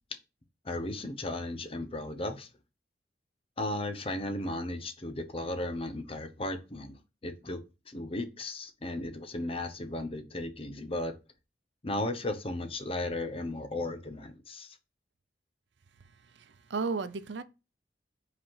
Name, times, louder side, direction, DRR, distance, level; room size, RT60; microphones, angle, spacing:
voice 1, 0.6-2.5 3.6-7.6 7.9-11.1 11.8-14.8, left 2 dB, 35° left, 0.8 m, -35 dB
voice 2, 16.4-17.4, right 4 dB, 85° right, 0.6 m, -34 dB
5.2 x 4.2 x 5.6 m
head